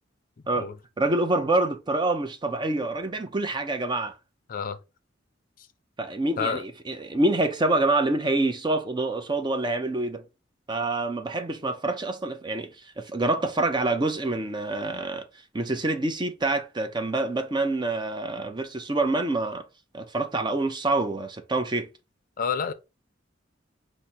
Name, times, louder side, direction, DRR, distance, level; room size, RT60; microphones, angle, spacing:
voice 1, 1.0-4.1 6.0-10.2 10.7-15.2 15.5-19.7 19.9-21.9, right 2 dB, 25° right, 0.5 m, -26 dB
voice 2, 22.4-22.7, left 6 dB, 45° left, 0.4 m, -29 dB
5.0 x 2.1 x 4.3 m
head